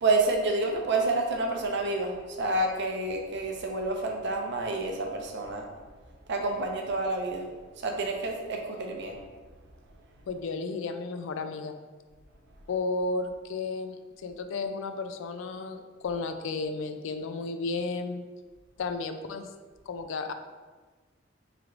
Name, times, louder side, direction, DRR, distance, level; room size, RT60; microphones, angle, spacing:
voice 1, 0.0-5.7 6.3-7.5 7.7-9.2, right 2 dB, 60° right, 2 dB, 0.6 m, -29 dB
voice 2, 10.3-11.8 12.7-18.2 18.8-19.5 19.9-20.3, left 3 dB, 65° left, 7 dB, 0.3 m, -33 dB
3.3 x 2.5 x 4.5 m, 1.4 s
head